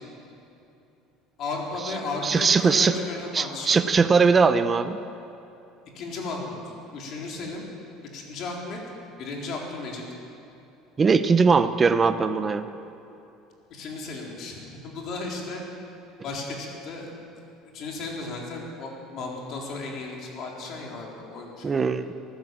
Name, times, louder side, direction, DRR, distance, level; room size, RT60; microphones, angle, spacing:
voice 1, 1.4-3.8 5.9-6.6 6.9-7.7 8.1-8.8 9.2-10.0 13.7-15.6 16.2-17.1 17.7-21.9, left 3 dB, 40° left, -1 dB, 3.8 m, -34 dB
voice 2, 2.2-3.0 3.3-5.0 11.0-12.7 21.6-22.1, right 5 dB, 20° right, 10 dB, 0.6 m, -20 dB
23.0 x 15.5 x 7.5 m, 2.8 s
cardioid pair, 170°, 0 cm